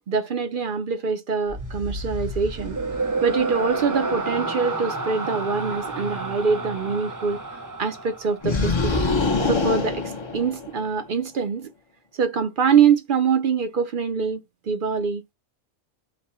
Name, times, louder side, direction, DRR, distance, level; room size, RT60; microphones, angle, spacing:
voice 1, 0.0-2.8 3.2-7.4 7.8-9.1 9.5-11.7 12.1-15.3, right 6 dB, 55° right, 0.7 m, -24 dB
sound 1, 1.5-8.9, right 3 dB, 30° right, 0.3 m, -30 dB
sound 2, 8.4-10.9, left 3 dB, 30° left, 0.7 m, -24 dB
4.2 x 2.8 x 4.2 m
omnidirectional pair, 1.2 m